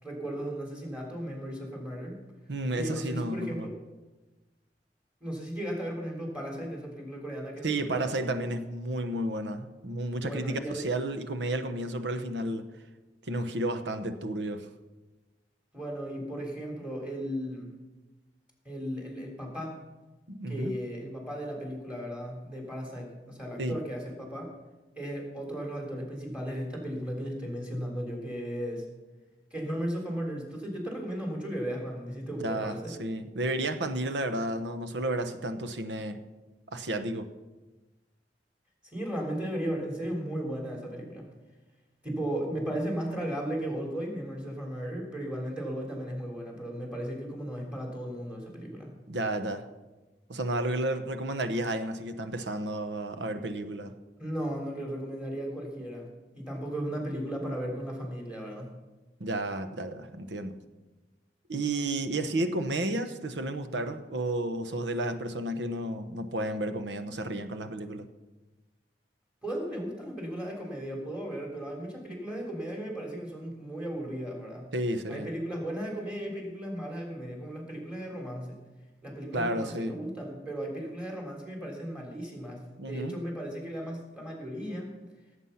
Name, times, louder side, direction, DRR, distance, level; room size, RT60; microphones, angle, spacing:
voice 1, 0.0-2.2 2.7-3.8 5.2-8.3 10.2-10.8 15.7-17.7 18.6-19.8 20.5-24.5 24.9-28.9 29.5-32.9 38.9-41.3 42.0-48.9 54.2-56.1 56.3-58.7 69.4-74.7 75.1-78.6 79.0-84.9, equal, 5° right, 0 dB, 3.4 m, -36 dB
voice 2, 2.5-3.7 7.6-12.6 13.3-14.7 20.3-20.7 23.6-23.7 32.4-36.2 36.7-37.3 49.1-49.6 50.3-53.9 59.2-60.6 61.5-68.1 74.7-75.3 79.3-79.9 82.8-83.1, right 1 dB, 90° right, 9 dB, 1.0 m, -32 dB
17.0 x 8.1 x 5.7 m, 1.2 s
head